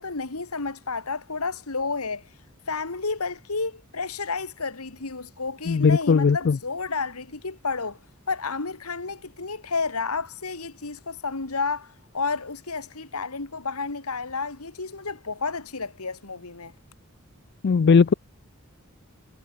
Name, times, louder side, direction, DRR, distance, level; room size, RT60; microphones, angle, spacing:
voice 1, 0.0-2.2 2.7-8.0 8.3-16.7, left 4 dB, 90° left, 2.1 m, -31 dB
voice 2, 5.7-6.6 17.6-18.1, left 5 dB, 50° left, 0.4 m, -18 dB
head